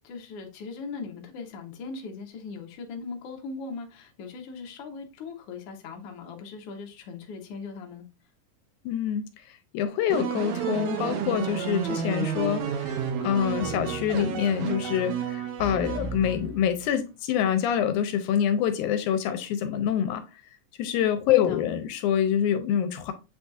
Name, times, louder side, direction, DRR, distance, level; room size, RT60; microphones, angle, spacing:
voice 1, 0.0-8.1 21.3-21.6, left 4 dB, 70° left, 1.5 m, -39 dB
voice 2, 8.9-9.2 9.7-20.2 20.8-23.1, left 9 dB, 85° left, 2.1 m, -26 dB
sound 1, 10.1-16.7, right 7 dB, 75° right, 2.0 m, -31 dB
7.8 x 2.6 x 2.3 m
omnidirectional pair, 3.5 m